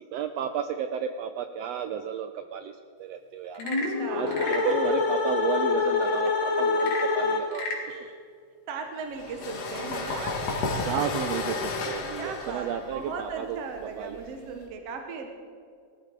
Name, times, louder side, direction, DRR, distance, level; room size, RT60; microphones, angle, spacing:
voice 1, 0.0-2.7 3.0-3.6 4.1-7.8 10.8-13.6 14.0-14.2, right 8 dB, 80° right, 8 dB, 1.5 m, -33 dB
Frog / Percussion / Wood, 3.5-4.8 6.7-7.9, left 3 dB, 85° left, 3.2 m, -35 dB
sound 1, 3.6-7.8, left 4 dB, 45° left, 2.3 m, -26 dB
voice 2, 3.6-4.9 7.9-8.2 8.7-10.3 12.2-15.3, right 5 dB, 65° right, 4 dB, 2.0 m, -36 dB
sound 2, 9.2-14.6, left 3 dB, 60° left, 2.5 m, -32 dB
19.5 x 13.5 x 4.6 m, 2.2 s
omnidirectional pair, 3.5 m